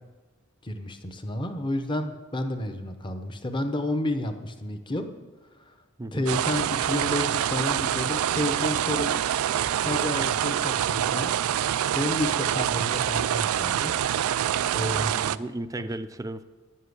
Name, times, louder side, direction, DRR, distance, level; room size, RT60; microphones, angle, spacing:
voice 1, 0.6-5.1 5.7-5.8 6.1-9.2 9.8-11.3 11.9-13.9 14.7-15.1 15.8-15.9, left 1 dB, 25° left, 7 dB, 0.9 m, -30 dB
sound 1, 6.3-15.4, right 10 dB, 85° right, 0.3 m, -26 dB
voice 2, 15.0-16.4, right 1 dB, 15° right, 11 dB, 0.4 m, -35 dB
11.0 x 7.5 x 8.1 m, 1.2 s
head